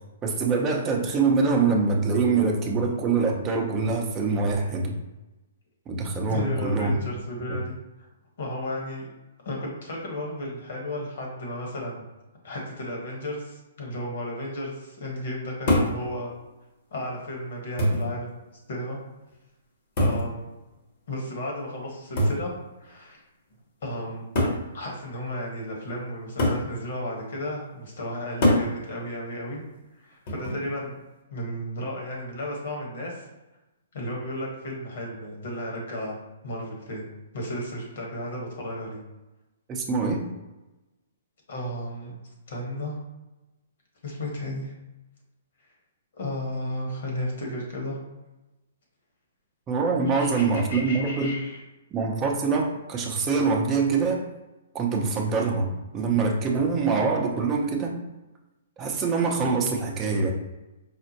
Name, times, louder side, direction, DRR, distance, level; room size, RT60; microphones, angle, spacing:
voice 1, 0.2-5.0 5.9-6.9 39.7-40.3 49.7-51.3 51.9-54.2 54.7-57.9 58.8-60.3, right 4 dB, 20° right, 0 dB, 0.6 m, -24 dB
voice 2, 6.3-7.7 8.4-9.1 9.4-12.0 12.4-16.3 16.9-18.4 18.7-19.0 20.0-20.5 21.1-22.5 22.8-23.2 23.8-24.3 24.7-29.6 30.0-31.0 31.3-33.2 33.9-36.2 36.4-37.1 37.3-39.0 41.5-42.1 42.5-43.0 44.0-44.7 46.1-48.0 50.2-51.6, left 1 dB, 65° left, -1 dB, 1.3 m, -33 dB
sound 1, 15.7-16.0 17.0-17.1 17.8-18.2 20.0-20.3 22.2-22.5 23.5-23.6 24.4-24.7 26.4-26.7 28.4-28.7 30.3-30.7, left 1 dB, 45° left, 1.0 m, -23 dB
4.8 x 2.1 x 2.9 m, 1.0 s
hypercardioid pair, 130°, 0 cm